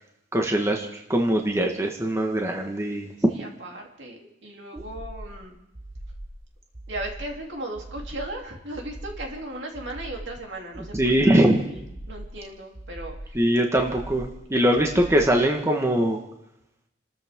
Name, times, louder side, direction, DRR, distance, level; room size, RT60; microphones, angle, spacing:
voice 1, 0.3-3.3 4.7-4.8 10.8-11.6 13.3-16.2, right 1 dB, 15° right, 2 dB, 1.5 m, -22 dB
voice 2, 3.3-5.5 6.9-11.8 12.1-13.4 14.5-14.7, right 1 dB, 70° right, 0 dB, 3.2 m, -37 dB
sound 1, 4.8-5.4 5.7-6.4 6.7-7.4 7.7-8.4 8.7-9.4 9.7-10.4 10.7-11.4 11.7-12.4 12.7-13.4 13.7-14.4 14.7-15.4, right 1 dB, 50° right, 7.1 m, -40 dB
29.0 x 13.5 x 3.7 m, 0.83 s
head